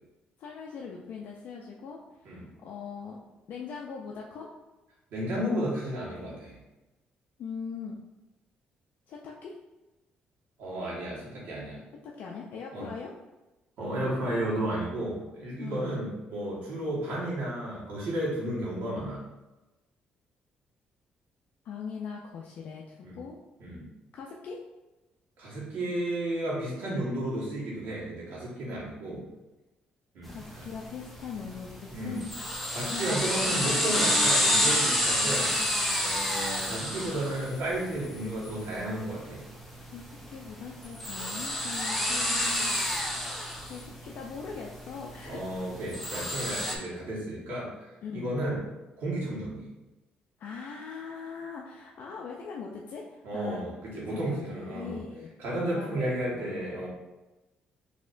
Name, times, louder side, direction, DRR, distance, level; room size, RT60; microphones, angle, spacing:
voice 1, 0.4-3.2 3.5-4.5 7.4-8.0 9.1-9.5 12.0-13.1 15.6-16.0 21.6-23.4 24.1-24.6 30.3-32.3 32.9-33.2 39.9-42.7 43.6-45.5 48.0-48.3 50.4-53.6 53.9-55.3 55.8-56.9, left 6 dB, 65° left, -1 dB, 0.4 m, -41 dB
voice 2, 5.1-6.6 10.6-11.8 12.7-12.9 13.8-19.3 23.0-23.2 23.6-23.9 25.4-29.2 30.1-30.6 31.9-32.2 32.7-35.5 36.0-39.4 45.3-47.7 48.1-48.6 49.0-49.7 53.2-55.0 55.4-56.9, right 1 dB, 80° right, -6 dB, 1.4 m, -33 dB
Drill - Raw Recordings, 30.3-46.8, left 1 dB, ahead, 0.5 m, -30 dB
4.2 x 2.8 x 2.5 m, 1.1 s
cardioid pair, 125°, 3 cm